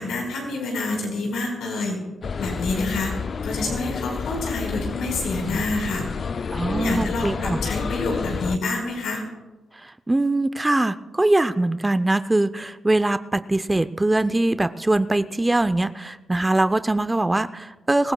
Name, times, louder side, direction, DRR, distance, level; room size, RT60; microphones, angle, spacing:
voice 1, 0.0-2.0 2.4-3.1 3.4-6.0 6.6-9.2, left 2 dB, 85° left, -1 dB, 4.7 m, -27 dB
sound 1, 2.2-8.6, left 5 dB, 55° left, 0.4 m, -29 dB
voice 2, 6.5-7.6 9.8-18.1, right 2 dB, 15° right, 12 dB, 0.6 m, -22 dB
25.5 x 15.5 x 2.3 m, 1.2 s
cardioid pair, 65°, 0 cm